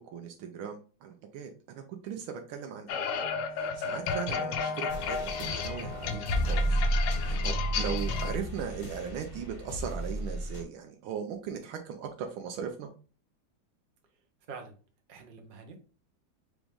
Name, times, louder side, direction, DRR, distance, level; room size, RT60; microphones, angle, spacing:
voice 1, 0.0-3.0 3.5-5.2 5.5-6.8 7.2-12.9, right 7 dB, 80° right, 4 dB, 1.5 m, -38 dB
sound 1, 2.9-8.4, left 6 dB, 70° left, 1.2 m, -33 dB
sound 2, 4.9-10.6, right 1 dB, 35° left, 1.1 m, -32 dB
voice 2, 14.5-14.8 15.1-15.8, right 5 dB, 50° right, 3 dB, 0.6 m, -45 dB
5.0 x 3.0 x 3.5 m, 0.37 s
omnidirectional pair, 2.3 m